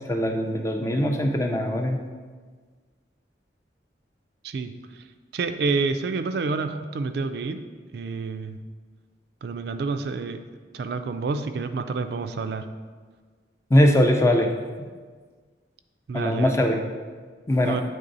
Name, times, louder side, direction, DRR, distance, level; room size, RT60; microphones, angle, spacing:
voice 1, 0.1-2.0 13.7-14.5 14.8-14.9 16.1-16.8 17.5-17.8, left 1 dB, 15° left, 3 dB, 0.4 m, -21 dB
voice 2, 5.3-7.6 7.9-8.6 9.4-10.4 10.7-12.7 16.1-16.6 17.7-17.8, right 4 dB, 60° right, 9 dB, 0.3 m, -28 dB
8.8 x 3.4 x 3.9 m, 1.5 s
head